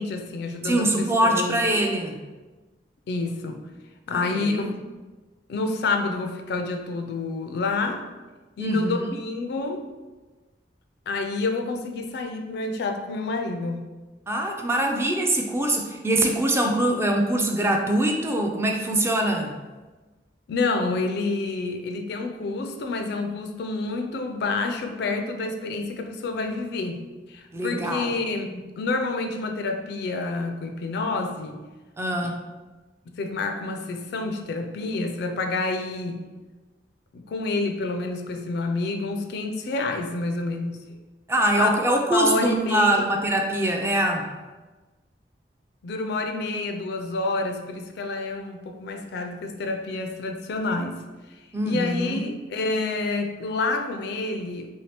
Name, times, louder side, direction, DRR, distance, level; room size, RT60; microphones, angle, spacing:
voice 1, 0.0-1.6 3.1-3.6 4.1-4.7 5.5-8.1 8.6-9.9 11.1-13.8 20.5-31.6 32.2-32.3 33.1-36.2 37.1-41.0 41.5-41.7 42.1-43.0 45.8-51.0 51.3-51.4 51.6-54.7, left 3 dB, 65° left, 5 dB, 0.4 m, -28 dB
voice 2, 0.6-2.2 4.1-4.7 8.6-9.1 14.3-19.5 27.5-28.1 32.0-32.4 41.3-44.3 51.5-52.2, right 1 dB, 15° right, 2 dB, 0.3 m, -23 dB
2.8 x 2.7 x 3.3 m, 1.2 s
head